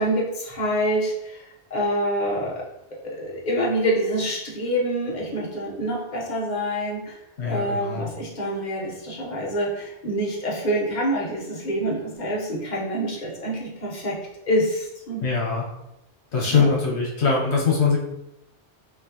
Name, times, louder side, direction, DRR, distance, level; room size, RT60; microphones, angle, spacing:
voice 1, 0.0-2.6 3.0-7.2 7.4-14.2 14.4-15.3 16.5-16.7, equal, 45° left, -3 dB, 1.1 m, -26 dB
voice 2, 7.4-8.1 15.2-15.6 16.3-18.0, left 5 dB, 75° left, -3 dB, 1.2 m, -22 dB
5.9 x 2.6 x 2.9 m, 0.84 s
omnidirectional pair, 1.1 m